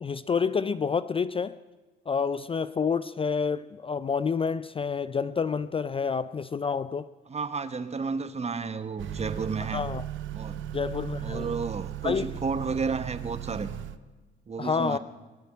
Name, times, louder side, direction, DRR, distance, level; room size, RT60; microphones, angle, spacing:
voice 1, 0.0-1.6 2.1-7.1 9.7-10.0 10.7-11.5 12.0-12.3 14.6-15.0, left 5 dB, 30° left, 0.4 m, -28 dB
voice 2, 7.3-9.8 10.3-10.6 11.2-13.7 14.5-15.0, right 5 dB, 30° right, 1.1 m, -32 dB
Motor vehicle (road) / Accelerating revving vroom, 9.0-14.0, right 12 dB, 75° right, 0.7 m, -36 dB
21.0 x 7.0 x 9.9 m
cardioid pair, 90°, 20 cm